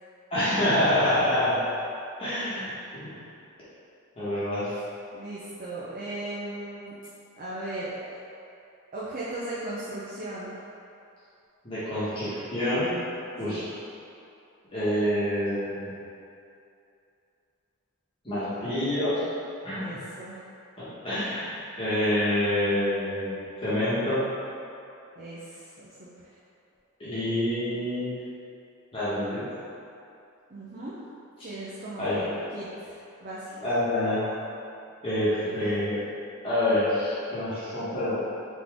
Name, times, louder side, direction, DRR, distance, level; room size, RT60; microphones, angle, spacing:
voice 1, 0.3-1.6 2.2-3.1 4.2-4.7 11.6-12.9 13.4-13.6 14.7-15.9 18.2-19.1 19.6-19.8 20.8-24.3 27.0-28.1 28.9-29.4 31.4-31.5 32.0-32.2 33.6-34.2 35.0-36.0 36.4-38.1, left 1 dB, 25° left, -13 dB, 1.2 m, -27 dB
voice 2, 5.1-6.9 7.4-8.2 8.9-10.5 13.4-13.7 19.8-20.4 25.2-26.3 30.5-30.9 31.4-33.5 35.3-35.8, right 2 dB, 40° right, -8 dB, 0.6 m, -37 dB
4.0 x 3.7 x 3.5 m, 2.7 s
head